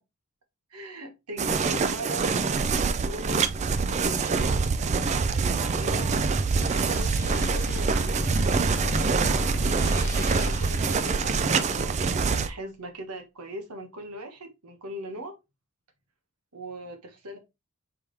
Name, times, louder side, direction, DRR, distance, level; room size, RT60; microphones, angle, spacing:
voice 1, 0.7-3.4 3.9-4.6 5.1-6.2 6.9-8.1 8.9-15.3 16.5-17.4, right 1 dB, 90° right, 1.2 m, -40 dB
sound 1, 1.4-12.5, right 4 dB, 30° right, 0.3 m, -25 dB
sound 2, 6.5-11.9, equal, 15° left, 1.0 m, -32 dB
4.6 x 3.6 x 3.3 m
head